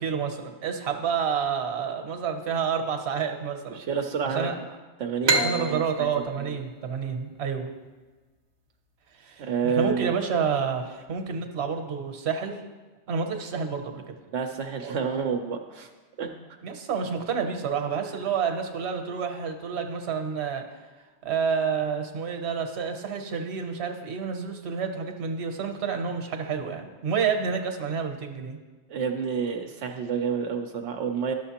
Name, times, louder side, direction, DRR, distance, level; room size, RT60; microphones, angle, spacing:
voice 1, 0.0-3.8 4.2-4.5 5.3-7.7 9.2-12.6 13.1-14.1 14.8-14.9 16.6-20.6 21.2-28.6, right 6 dB, 70° right, 5 dB, 1.1 m, -29 dB
voice 2, 3.7-4.5 5.0-6.1 6.5-6.6 9.4-10.1 14.3-15.9 16.2-16.3 28.9-31.3, right 6 dB, 90° right, 4 dB, 0.9 m, -29 dB
sound 1, 5.2-8.7, right 2 dB, 45° right, 0.3 m, -29 dB
12.0 x 6.6 x 2.9 m, 1.3 s
omnidirectional pair, 1.2 m